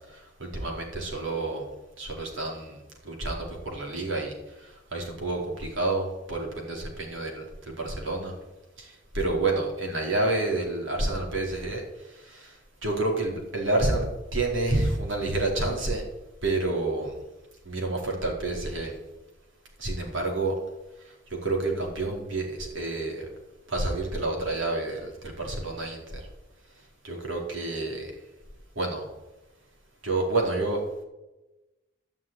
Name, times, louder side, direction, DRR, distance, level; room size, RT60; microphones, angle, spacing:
voice 1, 0.1-1.6 2.0-2.8 3.0-8.3 8.8-12.6 12.8-16.0 16.4-17.1 17.6-18.9 19.8-20.5 21.0-23.3 23.7-26.2 27.0-28.1 28.7-29.0 30.0-30.8, right 2 dB, 80° right, 0 dB, 4.5 m, -29 dB
14.0 x 7.2 x 9.2 m, 1.0 s
head